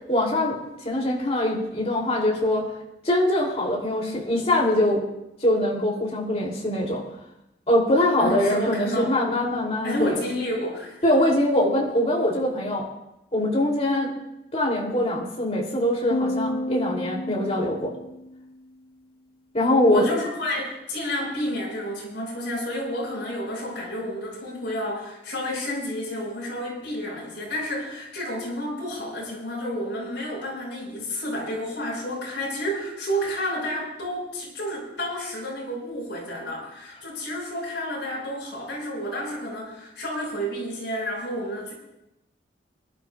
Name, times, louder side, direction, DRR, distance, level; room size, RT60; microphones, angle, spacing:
voice 1, 0.1-0.6 0.8-2.7 3.0-5.0 5.4-7.0 7.7-10.2 11.0-12.9 13.3-14.1 14.5-17.9 19.5-20.0, left 1 dB, 35° left, -3 dB, 2.9 m, -23 dB
voice 2, 8.2-9.1 9.8-11.0 19.8-41.7, equal, 70° left, -4 dB, 6.4 m, -30 dB
sound 1, 16.1-18.5, left 1 dB, 55° left, 0.5 m, -31 dB
25.0 x 12.0 x 2.4 m, 0.89 s
head